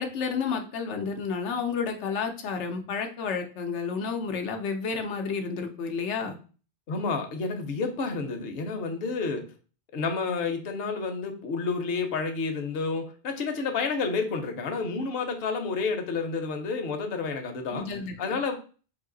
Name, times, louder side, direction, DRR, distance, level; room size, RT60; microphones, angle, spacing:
voice 1, 0.0-6.4 17.7-18.1, left 5 dB, 90° left, 4 dB, 1.0 m, -31 dB
voice 2, 6.9-9.5 9.9-17.9 18.2-18.5, left 4 dB, 65° left, 5 dB, 0.9 m, -30 dB
3.9 x 2.7 x 3.7 m, 0.37 s
omnidirectional pair, 1.1 m